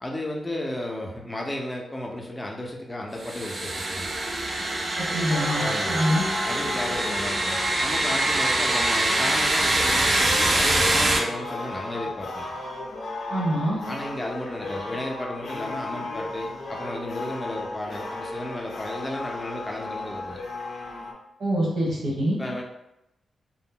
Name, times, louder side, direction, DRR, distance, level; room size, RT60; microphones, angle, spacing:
voice 1, 0.0-4.1 5.5-6.1 6.4-12.5 13.9-20.4 22.4-22.6, left 1 dB, 15° left, -1 dB, 0.5 m, -33 dB
sound 1, 3.2-11.2, right 2 dB, 40° right, 0.5 m, -24 dB
voice 2, 5.0-6.2 13.3-13.8 21.4-22.4, equal, 75° right, -5 dB, 1.1 m, -25 dB
sound 2, 5.3-21.1, left 2 dB, 75° left, 0.4 m, -35 dB
2.1 x 2.0 x 3.7 m, 0.88 s
wide cardioid pair, 110°, 0 cm